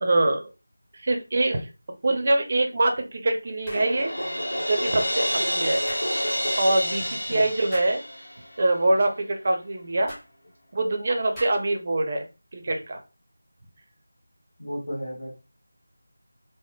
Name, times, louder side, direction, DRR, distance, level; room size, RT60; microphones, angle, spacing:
voice 1, 0.0-0.5 1.0-1.6 2.0-4.1 4.7-5.8 6.6-8.0 8.6-10.1 10.7-12.2 12.5-13.0, right 2 dB, 35° right, 4 dB, 0.5 m, -24 dB
sound 1, 3.6-4.0 5.9-6.1 7.7-8.0 10.1-10.3 11.4-11.8, equal, 10° left, 0.8 m, -40 dB
Crash cymbal, 3.7-8.7, equal, 80° left, 1.0 m, -28 dB
voice 2, 14.6-15.3, equal, 50° left, -4 dB, 1.4 m, -33 dB
3.7 x 2.0 x 2.2 m, 0.30 s
figure-of-eight pair, 170°, 0 cm